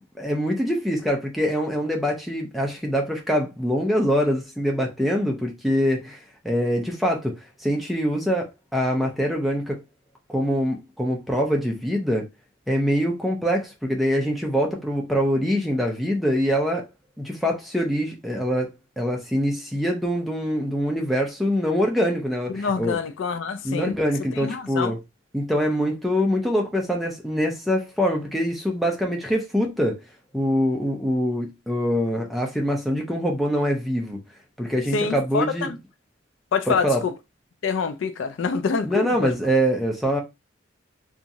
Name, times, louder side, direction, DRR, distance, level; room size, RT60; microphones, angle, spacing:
voice 1, 0.2-9.8 10.3-12.3 12.7-16.9 17.2-23.0 23.6-25.0 25.3-30.0 30.3-34.2 34.6-35.7 36.7-37.0 38.8-40.2, equal, ahead, 0.5 m, -24 dB
voice 2, 22.5-23.9 24.3-24.9 34.9-35.8 36.5-37.1 37.6-39.3, left 5 dB, 75° left, 0.4 m, -26 dB
2.9 x 2.4 x 2.6 m
head